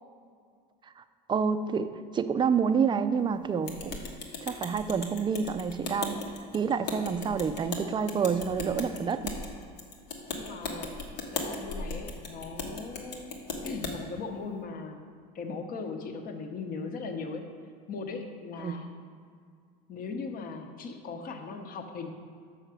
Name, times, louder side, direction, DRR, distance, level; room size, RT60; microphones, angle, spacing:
voice 1, 1.3-4.0 4.4-6.2 6.5-9.3 18.6-18.7, right 6 dB, 25° right, 11 dB, 0.4 m, -28 dB
sound 1, 3.7-13.9, left 3 dB, 90° left, 1.3 m, -37 dB
voice 2, 10.4-13.4 13.6-15.0 15.3-17.5 17.9-18.9 19.9-22.1, left 4 dB, 45° left, 6 dB, 0.9 m, -38 dB
6.5 x 5.7 x 6.2 m, 2.2 s
supercardioid pair, 100°, 20 cm